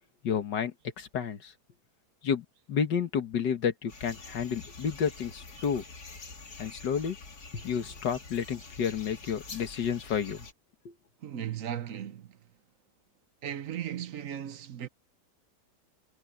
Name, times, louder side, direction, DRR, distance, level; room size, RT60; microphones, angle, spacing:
voice 1, 0.2-1.5 2.2-5.8 6.6-7.2 7.5-10.5 10.9-11.0, left 7 dB, 85° left, 2.1 m, -31 dB
sound 1, 3.9-10.5, left 3 dB, 65° left, 3.0 m, -46 dB
voice 2, 11.2-12.4 13.4-14.9, right 10 dB, 55° right, 1.1 m, -36 dB
omnidirectional pair, 1.8 m